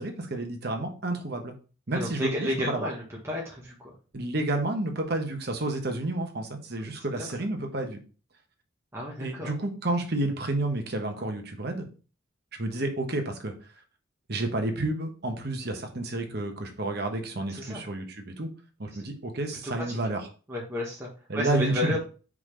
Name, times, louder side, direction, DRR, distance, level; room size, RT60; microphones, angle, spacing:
voice 1, 0.0-1.5 1.9-2.9 4.1-8.0 9.2-11.9 12.6-13.5 14.3-18.5 18.8-20.2 21.3-22.0, right 2 dB, 55° right, 4 dB, 1.2 m, -30 dB
voice 2, 1.9-3.9 7.2-7.3 8.9-9.5 17.5-17.8 19.6-20.0 20.5-22.0, left 1 dB, 15° right, -4 dB, 1.4 m, -32 dB
4.9 x 4.1 x 5.0 m, 0.36 s
head